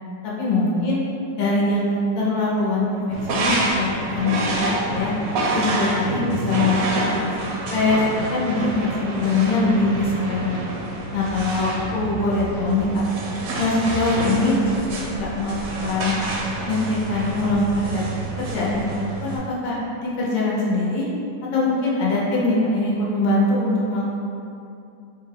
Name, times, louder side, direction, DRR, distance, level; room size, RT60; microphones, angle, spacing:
voice 1, 0.2-1.0 1.4-1.9 2.2-3.0 3.3-5.1 5.5-8.0 8.3-10.6 11.1-13.0 13.6-14.6 14.9-15.5 15.8-16.1 16.7-18.0 18.4-21.1 21.5-24.1, left 2 dB, 85° left, -5 dB, 1.4 m, -22 dB
sound 1, 3.1-19.4, right 2 dB, 75° right, 0.8 m, -27 dB
3.9 x 2.2 x 3.3 m, 2.7 s
omnidirectional pair, 2.0 m